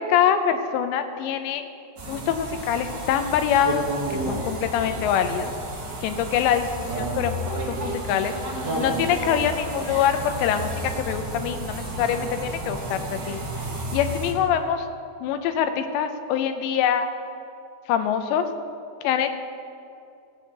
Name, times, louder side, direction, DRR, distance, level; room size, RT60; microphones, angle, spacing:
voice 1, 0.0-1.6 2.1-5.5 6.0-6.7 7.0-8.3 8.8-13.4 13.9-14.9 15.2-17.1 17.9-18.5 19.0-19.3, left 9 dB, 80° left, 8 dB, 2.9 m, -24 dB
sound 1, 2.0-14.3, right 1 dB, 45° right, 1.4 m, -31 dB
16.5 x 5.6 x 8.1 m, 2.6 s
omnidirectional pair, 5.2 m